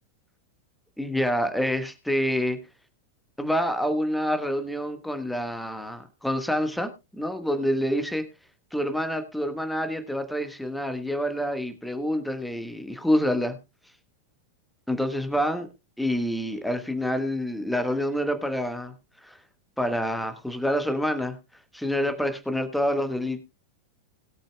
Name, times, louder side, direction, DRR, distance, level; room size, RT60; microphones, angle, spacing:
voice 1, 1.0-2.6 3.4-8.3 8.7-13.6 14.9-15.7 16.0-18.9 19.2-19.4 19.8-21.4 21.7-23.4, equal, ahead, 8 dB, 1.4 m, -27 dB
20.5 x 8.8 x 2.3 m, 0.26 s
figure-of-eight pair, 90°, 0 cm